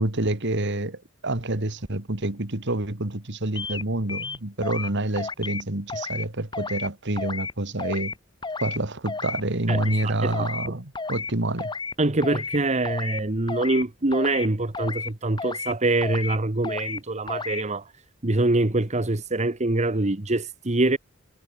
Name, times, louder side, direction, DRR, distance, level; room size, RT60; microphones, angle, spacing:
voice 1, 0.0-8.1 8.6-11.7, right 2 dB, 60° right, 2.4 m, -28 dB
sound 1, 3.6-3.8 4.1-4.9 5.2-5.6 5.9-6.3 6.5-6.9 7.2-7.5 7.8-8.1 8.4-8.8 9.1-9.4 9.7-10.0 10.3-10.7 10.9-11.3 11.6-11.9 12.2-12.6 12.8-13.2 13.5-13.8 14.1-14.5 14.7-15.1 15.4-15.7 16.0-16.4 16.6-17.0 17.3-17.6, left 4 dB, 20° left, 1.1 m, -32 dB
voice 2, 9.7-10.8 12.0-17.9 18.2-21.0, right 2 dB, 35° right, 1.3 m, -24 dB
head